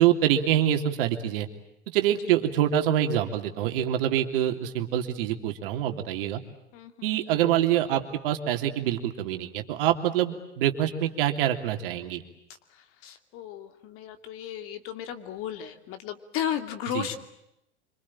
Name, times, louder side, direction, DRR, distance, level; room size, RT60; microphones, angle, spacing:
voice 1, 0.0-1.5 1.9-6.4 7.0-12.2 16.9-17.1, right 11 dB, 55° right, 5 dB, 3.2 m, -25 dB
voice 2, 6.7-7.2 13.0-17.2, left 10 dB, 40° left, 8 dB, 2.8 m, -34 dB
26.0 x 25.5 x 8.7 m, 0.83 s
figure-of-eight pair, 100°, 33 cm